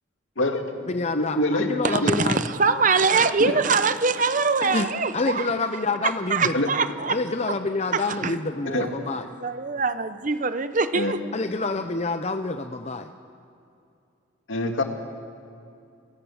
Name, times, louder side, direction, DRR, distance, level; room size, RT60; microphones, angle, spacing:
voice 1, 0.4-1.7 2.0-2.1 3.4-3.5 6.5-6.7 8.7-8.9 10.9-11.1 14.5-14.8, left 1 dB, 75° left, 4 dB, 2.1 m, -25 dB
voice 2, 0.9-2.4 4.6-6.5 7.1-9.3 11.3-13.1, left 3 dB, 35° left, 8 dB, 0.6 m, -27 dB
voice 3, 1.8-5.5 6.0-7.2 7.9-8.3 8.7-11.2, right 4 dB, 40° right, 12 dB, 0.8 m, -23 dB
27.5 x 17.5 x 7.2 m, 2.5 s
head